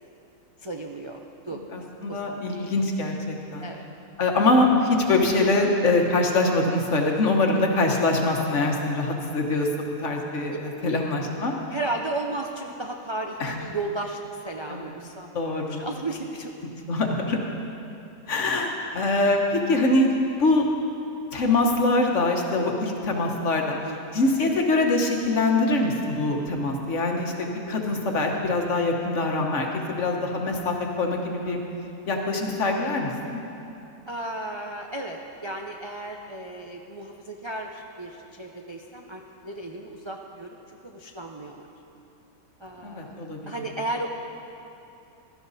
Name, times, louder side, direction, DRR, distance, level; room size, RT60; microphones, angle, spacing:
voice 1, 0.6-1.6 2.1-2.6 3.6-3.8 10.8-11.0 11.7-16.5 23.7-24.0 34.1-41.7 42.6-44.1, right 2 dB, 50° right, 1 dB, 0.3 m, -34 dB
voice 2, 1.5-3.7 4.2-9.7 10.0-11.6 13.4-13.5 14.7-14.9 15.3-15.8 16.9-17.4 18.3-20.1 20.4-20.6 21.3-23.8 24.1-31.6 32.1-33.4 42.8-43.4, left 2 dB, 55° left, 1 dB, 1.5 m, -24 dB
16.0 x 12.0 x 4.1 m, 2.8 s
omnidirectional pair, 1.6 m